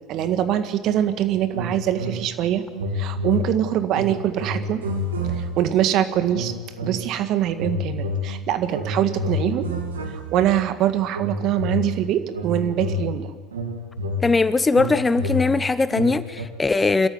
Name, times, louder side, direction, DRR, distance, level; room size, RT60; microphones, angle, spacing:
voice 1, 0.1-2.6 2.9-4.8 5.3-6.5 6.8-9.7 10.1-13.3, right 11 dB, 55° right, 1.8 m, -23 dB
sound 1, 1.5-2.4 2.7-5.8 6.3-7.2 7.5-10.6 11.1-16.5, left 1 dB, 85° right, 2.6 m, -29 dB
voice 2, 14.2-17.1, left 3 dB, 20° left, 0.9 m, -20 dB
25.5 x 13.5 x 9.6 m
hypercardioid pair, 70°, 0 cm